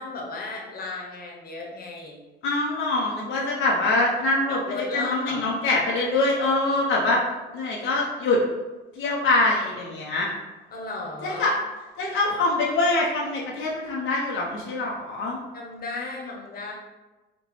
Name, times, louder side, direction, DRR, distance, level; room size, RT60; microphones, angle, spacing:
voice 1, 0.0-2.2 4.5-5.6 10.7-11.5 15.5-16.7, left 3 dB, 50° left, -1 dB, 1.0 m, -35 dB
voice 2, 2.4-4.6 4.9-7.2 7.5-8.4 9.0-10.3 11.2-11.5 12.0-15.4, left 2 dB, 80° left, -3 dB, 0.8 m, -24 dB
4.5 x 2.2 x 4.1 m, 1.1 s
cardioid pair, 90°, 20 cm